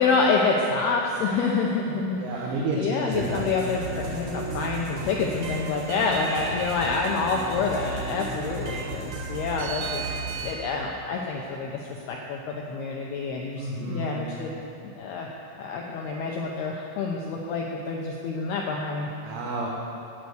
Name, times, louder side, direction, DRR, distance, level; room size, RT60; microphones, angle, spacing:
voice 1, 0.0-10.1 10.4-14.5 15.0-15.3 15.6-19.1, left 4 dB, 90° left, 0 dB, 2.2 m, -27 dB
voice 2, 2.2-3.5 13.6-14.4 19.2-19.7, right 2 dB, 75° right, -4 dB, 3.6 m, -30 dB
sound 1, 3.1-10.5, right 3 dB, 60° right, 2.3 m, -34 dB
12.5 x 8.5 x 7.9 m, 2.8 s
omnidirectional pair, 5.8 m